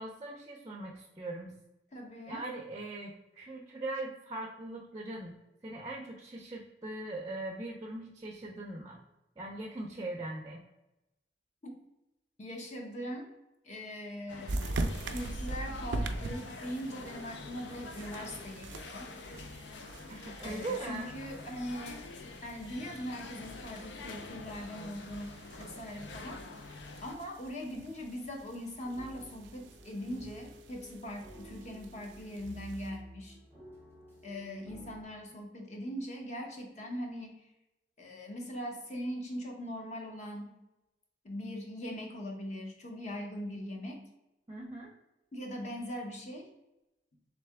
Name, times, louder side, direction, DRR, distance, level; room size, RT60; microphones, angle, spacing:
voice 1, 0.0-1.5 2.3-5.3 5.6-9.0 9.4-10.6 20.1-21.1 44.5-44.9, right 2 dB, 20° right, 0 dB, 0.5 m, -40 dB
voice 2, 1.9-2.4 11.6-11.7 12.4-13.3 13.6-14.6 15.0-19.1 20.4-22.1 22.4-26.4 27.0-33.4 34.2-37.4 38.0-40.5 41.2-44.0 45.3-46.5, equal, 40° left, 1 dB, 0.8 m, -41 dB
sound 1, 14.3-27.2, left 3 dB, 80° left, 0.5 m, -46 dB
sound 2, 14.5-32.9, right 2 dB, 85° right, 0.4 m, -43 dB
sound 3, 28.8-35.0, right 1 dB, 10° left, 0.9 m, -52 dB
3.7 x 3.3 x 3.4 m, 0.95 s
head